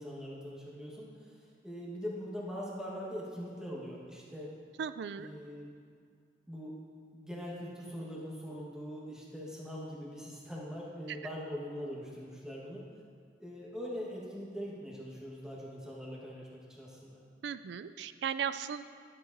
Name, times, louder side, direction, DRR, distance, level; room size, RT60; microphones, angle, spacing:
voice 1, 0.0-1.4 1.6-4.5 5.2-5.7 6.5-6.7 7.1-12.8 13.4-17.2, equal, 5° right, -5 dB, 1.4 m, -42 dB
voice 2, 4.8-5.3 17.4-18.8, right 7 dB, 65° right, 13 dB, 0.3 m, -36 dB
12.5 x 7.5 x 2.7 m, 2.1 s
head